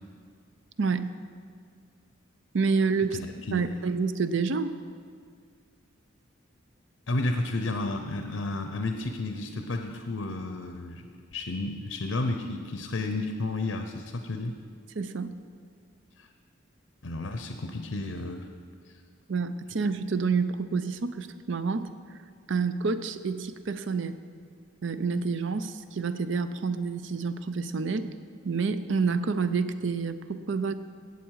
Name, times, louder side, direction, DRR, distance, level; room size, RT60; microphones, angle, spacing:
voice 1, 0.8-1.1 2.5-3.2 3.5-4.7 15.0-15.3 19.3-21.9 22.5-24.2 24.8-28.1 28.4-30.7, right 4 dB, 65° right, 12 dB, 0.5 m, -28 dB
voice 2, 3.1-3.7 7.1-11.1 11.3-14.5 16.2-16.3 17.0-18.5, left 2 dB, 75° left, 6 dB, 0.7 m, -32 dB
16.5 x 8.1 x 4.8 m, 2.1 s
head